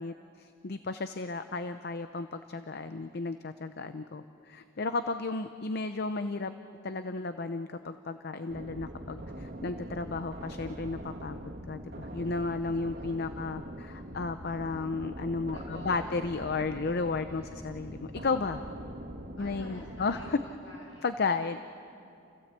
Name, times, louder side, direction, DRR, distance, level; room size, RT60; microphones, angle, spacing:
voice 1, 0.0-6.5 6.8-11.4 11.7-18.6 19.4-20.4 21.0-21.6, left 3 dB, 55° left, 10 dB, 0.6 m, -33 dB
sound 1, 8.5-20.4, right 1 dB, 55° right, 2.1 m, -43 dB
voice 2, 13.2-13.8 15.5-16.2 17.2-17.8 19.4-21.1, left 1 dB, 75° left, -2 dB, 6.6 m, -50 dB
29.0 x 16.0 x 8.2 m, 2.6 s
head